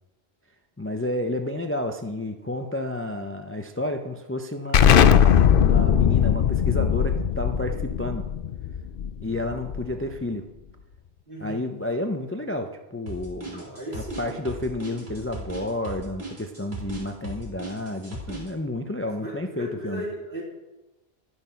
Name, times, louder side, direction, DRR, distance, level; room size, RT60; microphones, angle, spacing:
voice 1, 0.8-8.2 9.2-10.4 11.4-13.6 13.9-20.0, left 1 dB, 15° left, 5 dB, 0.6 m, -31 dB
Explosion, 4.7-10.1, left 8 dB, 60° left, 0.7 m, -19 dB
voice 2, 11.3-11.6 13.5-14.6 19.1-20.4, right 1 dB, 55° right, -4 dB, 3.8 m, -36 dB
sound 1, 13.1-18.5, right 2 dB, 70° right, 3.3 m, -37 dB
11.5 x 9.0 x 5.7 m, 1.0 s
omnidirectional pair, 1.1 m